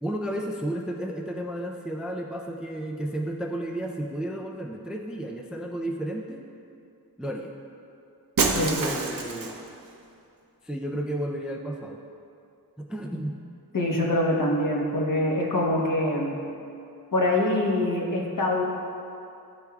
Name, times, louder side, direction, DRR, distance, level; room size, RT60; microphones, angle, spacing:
voice 1, 0.0-6.5 7.2-7.5 8.4-9.5 10.6-12.0 12.8-13.4, right 1 dB, ahead, 2 dB, 0.4 m, -32 dB
Shatter, 8.4-9.7, right 4 dB, 65° right, 0.7 m, -27 dB
voice 2, 13.7-16.4 17.1-18.6, left 1 dB, 60° left, -2 dB, 1.2 m, -24 dB
12.0 x 4.4 x 2.3 m, 2.6 s
wide cardioid pair, 90°, 37 cm